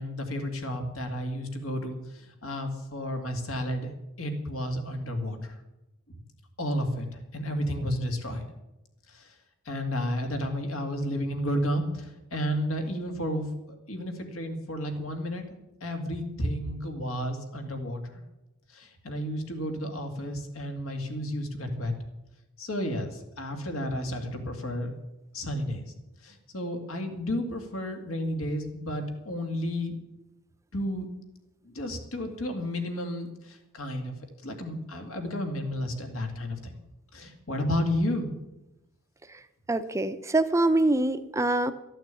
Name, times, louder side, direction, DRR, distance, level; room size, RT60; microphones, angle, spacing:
voice 1, 0.0-3.9 4.2-5.6 6.1-6.2 6.6-7.1 7.3-8.4 9.1-9.3 9.7-18.2 18.7-21.9 22.6-24.9 25.3-25.8 26.2-30.0 30.7-31.1 31.6-34.2 34.4-36.7 37.1-38.3, equal, 65° left, 5 dB, 2.3 m, -32 dB
voice 2, 39.7-41.7, right 2 dB, 15° right, 10 dB, 0.7 m, -24 dB
13.5 x 9.1 x 8.4 m, 0.96 s
head